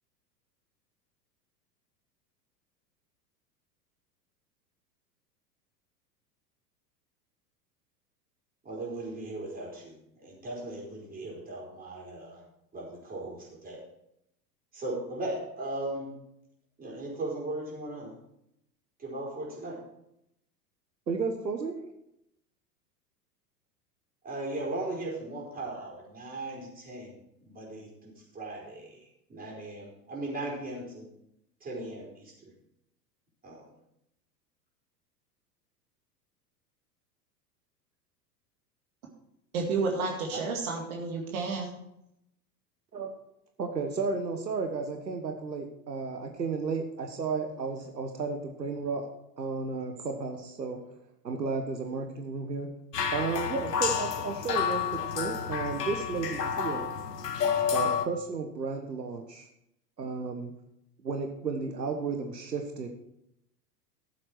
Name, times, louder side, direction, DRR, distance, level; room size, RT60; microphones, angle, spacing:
voice 1, 8.6-12.4 12.7-13.8 14.7-16.2 16.8-18.2 19.0-19.8 24.2-31.1 31.6-32.5 33.4-33.7 40.3-40.4, right 2 dB, 15° right, -2 dB, 4.7 m, -38 dB
voice 2, 21.1-21.8 42.9-43.1 43.6-49.1 49.4-50.8 51.2-52.7 53.1-56.9 57.7-59.5 60.0-60.5 61.0-62.9, right 4 dB, 80° right, 4 dB, 1.3 m, -33 dB
voice 3, 39.5-41.7, right 4 dB, 55° right, 0 dB, 2.2 m, -31 dB
sound 1, 52.9-58.1, left 7 dB, 70° left, 1.3 m, -30 dB
14.0 x 7.7 x 4.6 m, 0.79 s
figure-of-eight pair, 90°, 50 cm